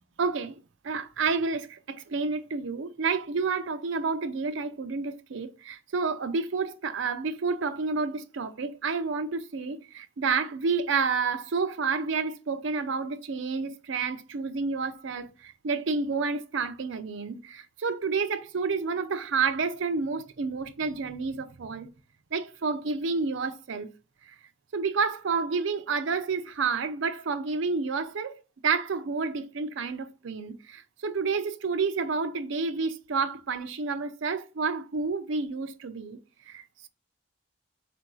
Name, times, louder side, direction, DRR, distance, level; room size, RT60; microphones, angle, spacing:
voice 1, 0.2-0.6 0.8-21.9 22.3-23.9 24.2-24.4 24.7-36.2 36.5-36.9, right 4 dB, 65° right, 0.5 m, -30 dB
3.7 x 2.5 x 4.5 m
head